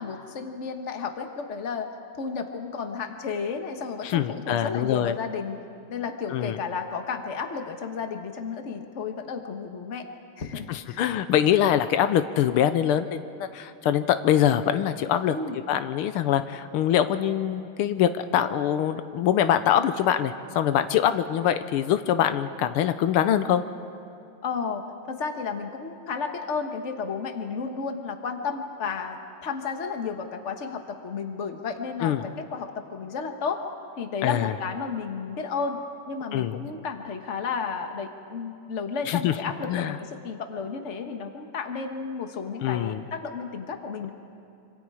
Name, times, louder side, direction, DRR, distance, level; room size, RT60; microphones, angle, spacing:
voice 1, 0.0-1.9 2.2-5.6 5.9-10.0 10.4-11.0 15.3-15.6 24.4-33.6 34.0-35.8 36.1-44.1, left 5 dB, 35° left, 5 dB, 1.5 m, -32 dB
voice 2, 4.0-5.2 6.3-6.6 10.7-15.4 15.7-23.6 32.0-32.3 34.2-34.5 36.3-36.6 39.1-39.3 39.7-40.0 42.6-43.0, left 10 dB, 90° left, 10 dB, 1.7 m, -24 dB
26.0 x 26.0 x 4.9 m, 2.7 s
omnidirectional pair, 2.4 m